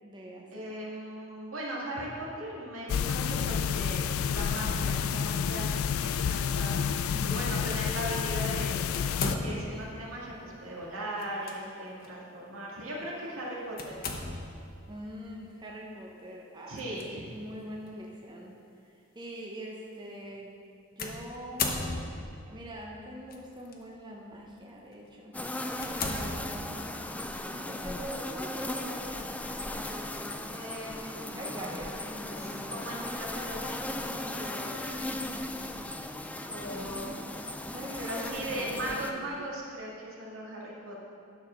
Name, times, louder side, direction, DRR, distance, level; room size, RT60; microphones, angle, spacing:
voice 1, 0.0-0.7 7.1-7.7 14.9-18.6 18.9-20.5 21.0-25.4 26.0-26.9 27.5-30.6 31.3-32.9 35.1-35.7 36.5-37.2 37.7-39.4, equal, 20° right, -2 dB, 0.9 m, -44 dB
voice 2, 0.5-5.7 6.0-6.8 7.2-8.9 9.2-14.0 16.7-17.2 30.4-31.4 32.3-35.1 36.5-37.2 38.0-41.0, right 1 dB, 80° right, -4 dB, 2.2 m, -38 dB
sound 1, 2.9-9.4, left 7 dB, 80° left, 0.3 m, -29 dB
sound 2, 8.9-9.9 11.2-11.6 12.0-12.1 13.8-14.7 16.7-17.0 17.9-18.0 21.0-22.4 23.3-23.7 24.3-24.5 25.1-25.2 25.8-27.0, left 3 dB, 45° left, 0.9 m, -35 dB
sound 3, 25.3-39.1, left 1 dB, 5° left, 0.4 m, -37 dB
11.0 x 4.8 x 6.4 m, 2.6 s
head